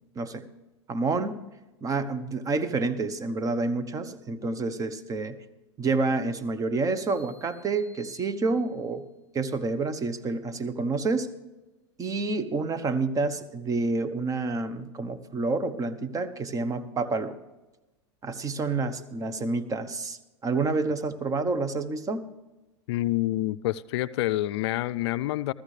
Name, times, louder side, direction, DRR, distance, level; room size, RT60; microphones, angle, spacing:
voice 1, 0.2-0.5 0.9-1.4 1.8-5.4 5.8-9.0 9.3-11.3 12.0-17.3 18.2-22.3, right 3 dB, 25° right, 13 dB, 0.9 m, -28 dB
sound 1, 7.1-9.0, left 2 dB, 15° left, 5.3 m, -56 dB
voice 2, 22.9-25.5, left 16 dB, 65° left, 15 dB, 0.4 m, -27 dB
15.0 x 14.0 x 3.3 m, 1.1 s
hypercardioid pair, 110°, 15 cm